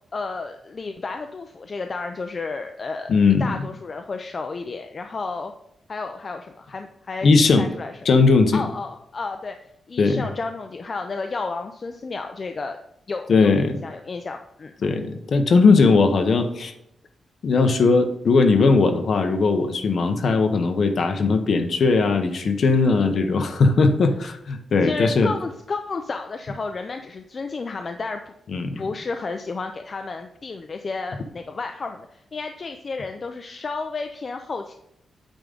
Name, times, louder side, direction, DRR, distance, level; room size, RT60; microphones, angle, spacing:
voice 1, 0.1-3.1 3.4-5.5 5.9-7.9 8.5-9.6 9.9-12.8 13.1-14.7 24.8-28.3 28.8-34.7, left 4 dB, 35° left, 5 dB, 0.4 m, -32 dB
voice 2, 3.1-3.6 7.2-7.7 8.0-8.6 10.0-10.3 13.3-13.8 14.8-16.7 17.4-25.3 28.5-28.8, left 4 dB, 50° left, 7 dB, 0.8 m, -18 dB
8.9 x 3.7 x 5.2 m, 0.78 s
wide cardioid pair, 160°, 0 cm